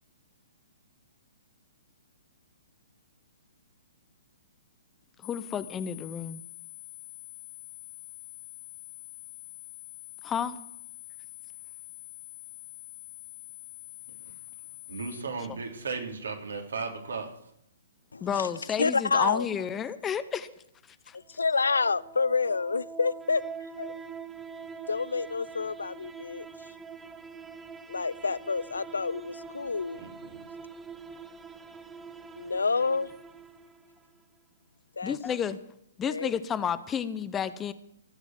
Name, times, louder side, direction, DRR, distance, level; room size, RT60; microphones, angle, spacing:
sound 1, 5.2-15.2, left 23 dB, 40° left, 2.5 m, -46 dB
voice 1, 5.2-6.4 10.2-10.6 18.2-20.5 21.1-21.2 35.0-35.6 36.0-37.7, left 8 dB, 15° left, 0.7 m, -31 dB
voice 2, 14.9-17.5 29.9-30.4, right 4 dB, 80° right, 3.1 m, -36 dB
voice 3, 18.1-18.5 18.8-19.5 21.1-23.4 23.8-23.9 24.9-26.5 27.9-30.0 32.4-33.1 35.0-35.2 36.1-36.3, left 4 dB, 85° left, 0.4 m, -28 dB
sound 2, 21.3-34.2, right 5 dB, 10° right, 1.0 m, -44 dB
15.5 x 7.2 x 7.4 m
hypercardioid pair, 130°, 0 cm